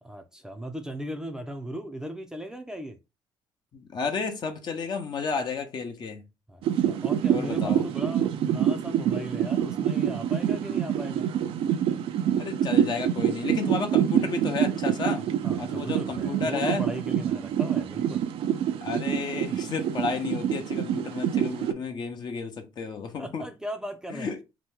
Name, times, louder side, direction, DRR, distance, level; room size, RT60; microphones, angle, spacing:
voice 1, 0.0-3.0 6.5-11.3 15.4-18.3 23.2-24.3, equal, 5° right, 0.5 m, -37 dB
voice 2, 3.7-6.2 7.3-7.8 12.4-15.3 15.6-16.8 18.8-23.5 24.1-24.4, left 5 dB, 50° left, 0.8 m, -32 dB
Heart monitor floor Noise, 6.6-21.7, right 9 dB, 75° right, 0.4 m, -26 dB
2.9 x 2.2 x 3.4 m
cardioid pair, 85°, 9 cm